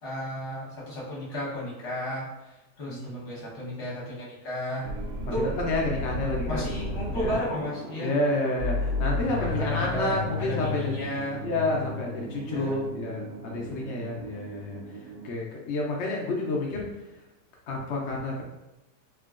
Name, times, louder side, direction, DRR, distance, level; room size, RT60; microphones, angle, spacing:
voice 1, 0.0-4.9 5.3-5.5 6.5-8.1 9.4-11.5 12.4-12.8, equal, 50° left, -7 dB, 1.3 m, -33 dB
voice 2, 2.9-3.2 5.6-6.7 7.1-7.4 8.0-10.9 11.4-14.8 15.2-16.9 17.7-18.4, left 2 dB, 80° left, -2 dB, 0.6 m, -29 dB
sound 1, 4.8-15.3, left 2 dB, 65° right, 1.4 m, -34 dB
3.4 x 2.2 x 2.4 m, 1.0 s
omnidirectional pair, 1.8 m